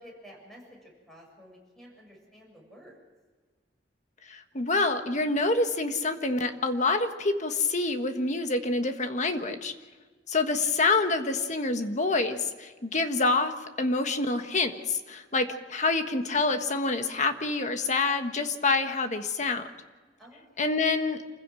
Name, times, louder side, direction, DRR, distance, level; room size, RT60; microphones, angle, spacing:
voice 1, 0.0-3.0 20.2-20.8, equal, ahead, -1 dB, 7.2 m, -52 dB
voice 2, 4.3-9.7 10.3-19.6 20.6-21.2, left 3 dB, 40° left, 7 dB, 1.5 m, -27 dB
27.5 x 15.5 x 6.3 m, 1.4 s
head